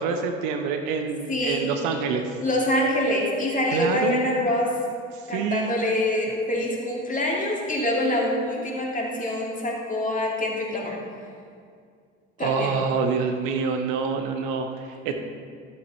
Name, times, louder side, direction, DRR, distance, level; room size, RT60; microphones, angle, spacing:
voice 1, 0.0-2.3 3.7-4.5 5.1-5.7 12.4-15.1, right 5 dB, 50° right, 5 dB, 0.9 m, -27 dB
voice 2, 1.3-1.7 2.4-4.8 5.3-11.0 12.4-12.8, left 1 dB, 20° left, -2 dB, 2.5 m, -25 dB
12.0 x 7.9 x 4.2 m, 2.2 s
figure-of-eight pair, 60°, 39 cm